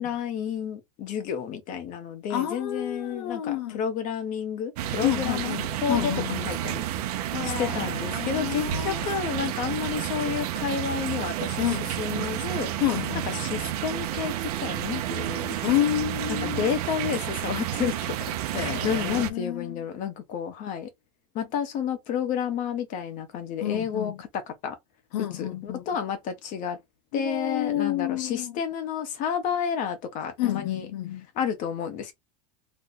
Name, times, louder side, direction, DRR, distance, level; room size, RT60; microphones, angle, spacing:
voice 1, 0.0-5.5 5.8-6.1 6.4-6.8 7.4-12.7 13.2-15.6 16.3-20.9 21.3-24.8 25.3-26.8 27.1-30.9 31.3-32.1, left 7 dB, 40° left, 1.1 m, -31 dB
voice 2, 2.3-3.8 5.0-6.5 7.3-9.0 11.6-11.9 12.8-13.4 15.6-16.7 18.5-19.8 23.6-24.2 25.1-25.8 27.1-28.5 30.4-31.3, left 12 dB, 80° left, 0.5 m, -29 dB
sound 1, 4.8-19.3, right 12 dB, 80° right, 0.7 m, -30 dB
3.2 x 2.2 x 3.9 m
supercardioid pair, 140°, 20 cm